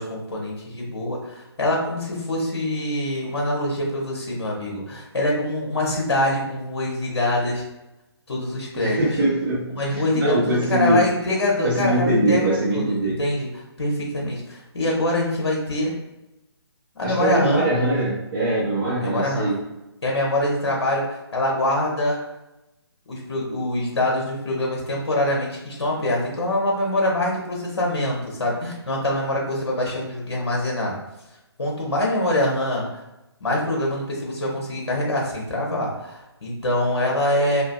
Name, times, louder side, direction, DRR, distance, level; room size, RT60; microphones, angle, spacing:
voice 1, 0.0-7.6 8.3-9.2 9.7-15.9 16.9-17.7 19.0-19.5 20.0-22.2 23.1-31.0 31.6-33.0 33.4-37.6, left 1 dB, 65° left, -2 dB, 1.1 m, -24 dB
voice 2, 8.7-9.6 9.9-11.0 11.6-13.1 17.0-19.6, right 1 dB, 55° right, -8 dB, 1.4 m, -22 dB
3.8 x 2.8 x 2.3 m, 0.94 s
figure-of-eight pair, 140°, 14 cm